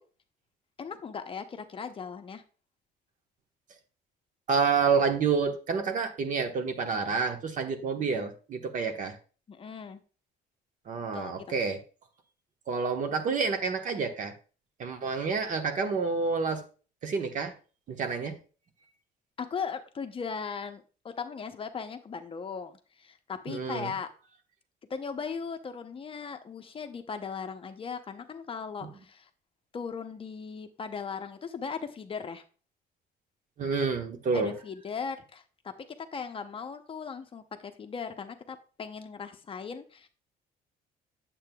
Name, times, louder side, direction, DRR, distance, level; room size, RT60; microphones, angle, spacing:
voice 1, 0.8-2.4 8.0-8.1 9.5-10.0 11.1-11.3 19.4-24.1 24.9-29.3 29.7-32.4 34.3-35.7 36.1-40.1, left 6 dB, 30° left, 8 dB, 0.7 m, -38 dB
voice 2, 4.5-9.2 10.9-11.8 12.7-14.3 14.8-16.6 17.0-17.5 17.9-18.4 23.5-23.9 28.8-28.9 33.6-34.6, right 5 dB, 50° right, 5 dB, 1.2 m, -28 dB
8.7 x 7.5 x 2.3 m, 0.37 s
cardioid pair, 110°, 17 cm